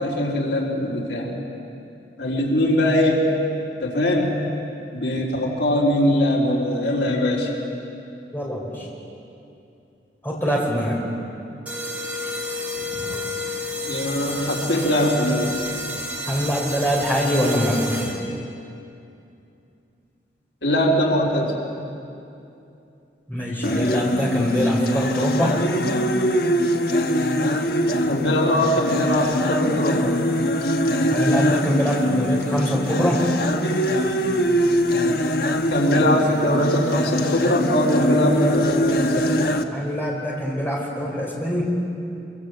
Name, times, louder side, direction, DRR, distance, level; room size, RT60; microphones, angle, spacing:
voice 1, 0.0-1.3 2.2-3.3 3.8-4.4 4.9-7.5 12.9-13.0 13.8-15.5 20.6-21.5 28.1-30.0 35.7-39.5, left 1 dB, 90° left, -2 dB, 4.0 m, -21 dB
voice 2, 8.3-8.9 10.2-11.0 16.2-18.0 23.3-25.6 31.1-33.2 39.7-41.6, equal, 10° left, -3 dB, 4.7 m, -23 dB
sound 1, 11.7-18.4, left 1 dB, 10° right, 2.9 m, -30 dB
sound 2, 23.6-39.6, equal, 60° left, 1.3 m, -23 dB
25.0 x 24.5 x 8.1 m, 2.7 s
head